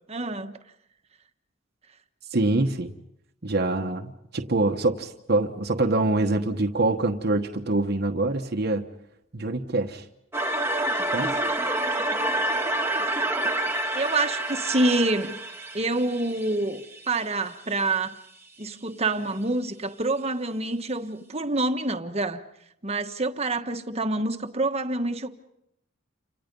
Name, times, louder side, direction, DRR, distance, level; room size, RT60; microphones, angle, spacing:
voice 1, 0.1-0.6 13.9-15.4 15.7-18.1 18.6-22.4 22.8-25.3, right 2 dB, 35° right, 1.4 m, -27 dB
voice 2, 2.3-2.9 3.4-8.8 9.3-10.0 11.1-11.4, right 2 dB, 60° right, 1.3 m, -25 dB
sound 1, 10.3-17.2, right 1 dB, 15° right, 1.7 m, -28 dB
30.0 x 26.5 x 5.4 m
head